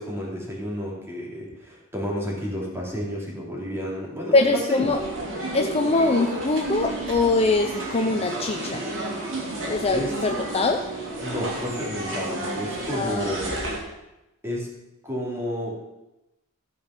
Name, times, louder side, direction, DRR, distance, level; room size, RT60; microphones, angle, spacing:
voice 1, 0.0-4.9 9.9-10.1 11.2-13.6 14.4-14.7 15.0-15.8, equal, 10° right, -3 dB, 2.7 m, -31 dB
voice 2, 4.3-5.0 5.5-8.8 9.7-10.8 12.9-13.4, left 3 dB, 25° left, 4 dB, 0.6 m, -23 dB
sound 1, 4.8-13.8, right 2 dB, 60° right, 2.7 m, -31 dB
14.0 x 5.3 x 5.7 m, 0.96 s
head